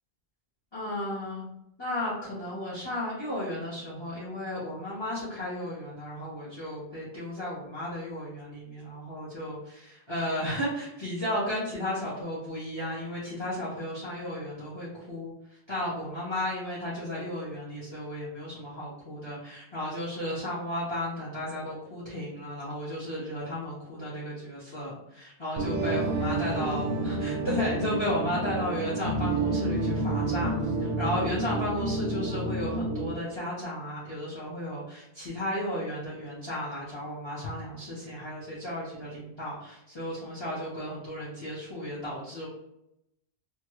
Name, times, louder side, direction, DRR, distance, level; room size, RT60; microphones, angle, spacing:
voice 1, 0.7-1.4 1.8-42.5, left 1 dB, 25° left, -9 dB, 0.9 m, -34 dB
sound 1, 25.6-33.1, right 2 dB, 60° right, 0.6 m, -29 dB
3.0 x 2.4 x 3.0 m, 0.83 s
omnidirectional pair, 1.1 m